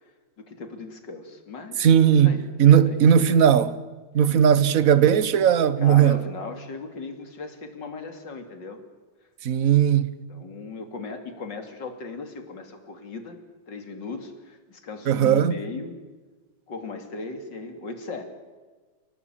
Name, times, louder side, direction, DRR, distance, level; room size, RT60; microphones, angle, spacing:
voice 1, 0.0-2.4 2.8-3.0 5.8-8.8 10.3-13.4 13.7-16.0 16.7-18.2, left 4 dB, 60° left, 3.4 m, -37 dB
voice 2, 1.8-3.8 4.1-6.2 9.4-10.1 15.1-15.5, right 8 dB, 50° right, 1.4 m, -18 dB
29.5 x 18.0 x 9.0 m
omnidirectional pair, 2.2 m